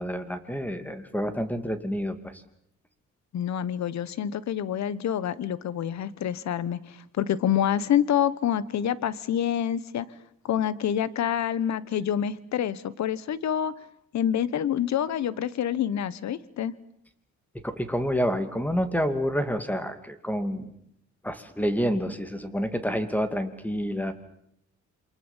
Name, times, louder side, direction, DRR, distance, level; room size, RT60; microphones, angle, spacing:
voice 1, 0.0-2.3 17.6-20.7 21.2-24.1, equal, 5° left, 10 dB, 2.6 m, -28 dB
voice 2, 3.3-10.1 10.4-13.7 14.1-16.7, left 9 dB, 65° left, 18 dB, 1.3 m, -27 dB
28.0 x 23.5 x 7.4 m, 0.75 s
cardioid pair, 90°, 30 cm